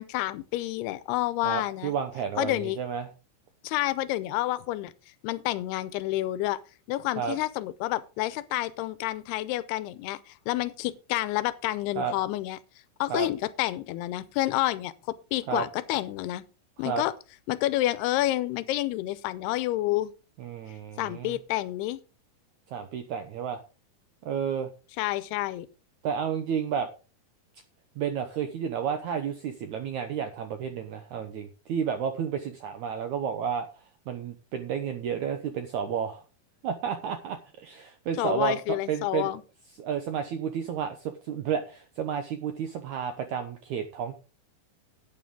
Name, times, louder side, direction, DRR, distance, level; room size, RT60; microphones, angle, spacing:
voice 1, 0.0-1.9 2.4-2.8 3.6-4.9 5.2-6.6 6.9-12.6 13.0-14.9 15.3-16.4 16.8-17.1 17.5-20.1 21.0-22.0 25.0-25.7 38.2-39.4, left 16 dB, 90° left, 2.7 m, -29 dB
voice 2, 1.4-3.1 7.2-7.4 11.9-12.1 13.1-13.3 15.5-15.6 16.8-17.0 20.4-21.3 22.7-23.6 24.2-24.7 26.0-26.9 28.0-33.7 34.1-36.2 36.6-39.3 39.8-44.1, right 7 dB, 75° right, 1.7 m, -31 dB
11.0 x 9.2 x 3.7 m
omnidirectional pair, 4.6 m